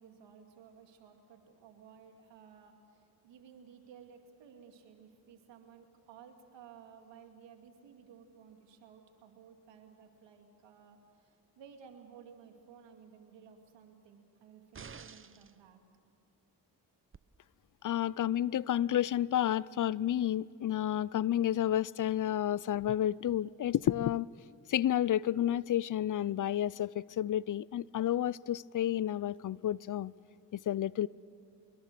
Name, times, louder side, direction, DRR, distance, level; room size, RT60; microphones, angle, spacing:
voice 1, 0.0-15.8, right 7 dB, 85° right, 5 dB, 2.4 m, -56 dB
sound 1, 14.7-15.6 17.1-17.2, right 5 dB, 30° right, 0.8 m, -49 dB
voice 2, 17.8-24.3 24.7-30.1 30.5-31.1, left 11 dB, 45° left, 23 dB, 0.5 m, -31 dB
25.5 x 21.5 x 6.7 m, 2.4 s
supercardioid pair, 55°, 43 cm